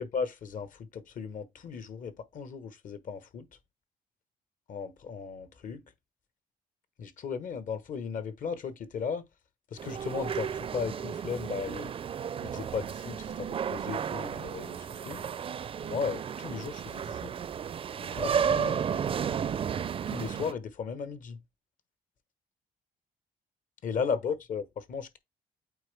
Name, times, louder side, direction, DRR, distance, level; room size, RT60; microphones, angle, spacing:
voice 1, 0.0-3.5 4.7-5.8 7.0-9.2 9.7-11.9 12.4-15.2 15.8-17.3 18.0-18.8 20.1-21.4 23.8-25.2, left 6 dB, 60° left, 1.1 m, -36 dB
sound 1, 9.8-20.5, right 7 dB, 40° right, 0.4 m, -33 dB
8.5 x 3.9 x 3.3 m
cardioid pair, 115°, 15 cm